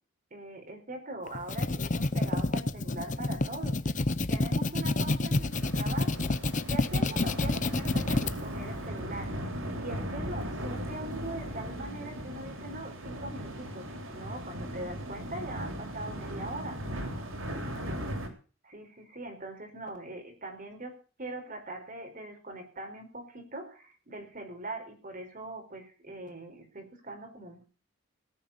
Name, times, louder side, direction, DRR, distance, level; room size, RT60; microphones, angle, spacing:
voice 1, 0.3-3.8 4.3-6.2 6.5-9.3 9.7-16.8 17.8-18.2 18.6-20.9 21.2-27.6, right 2 dB, 45° right, 4 dB, 4.7 m, -41 dB
sound 1, 1.3-8.3, left 2 dB, 40° left, 0.8 m, -29 dB
sound 2, 5.5-18.3, equal, 90° right, 3.6 m, -38 dB
17.5 x 5.9 x 8.5 m, 0.38 s
head